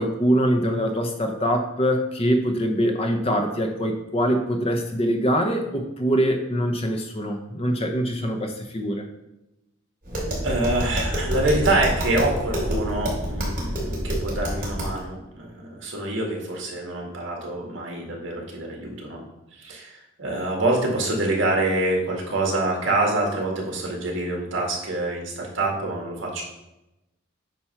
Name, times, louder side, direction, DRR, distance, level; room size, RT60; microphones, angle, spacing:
voice 1, 0.0-9.1, equal, 30° left, 4 dB, 0.8 m, -23 dB
Tap, 10.0-15.0, equal, 45° right, 2.6 m, -27 dB
voice 2, 10.4-19.2 19.5-26.4, right 2 dB, 70° right, -1 dB, 1.9 m, -26 dB
8.9 x 3.1 x 5.7 m, 0.93 s
head